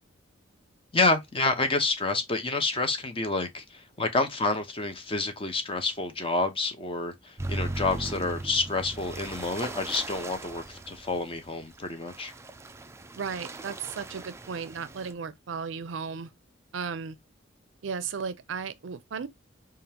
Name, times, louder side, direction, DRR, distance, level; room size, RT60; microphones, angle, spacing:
voice 1, 0.9-12.3, left 3 dB, 30° left, 0.8 m, -28 dB
sound 1, 7.4-15.1, right 2 dB, 15° right, 0.3 m, -38 dB
voice 2, 13.1-16.3 16.7-17.2 17.8-19.3, right 6 dB, 75° right, 0.5 m, -35 dB
5.1 x 2.4 x 2.8 m
head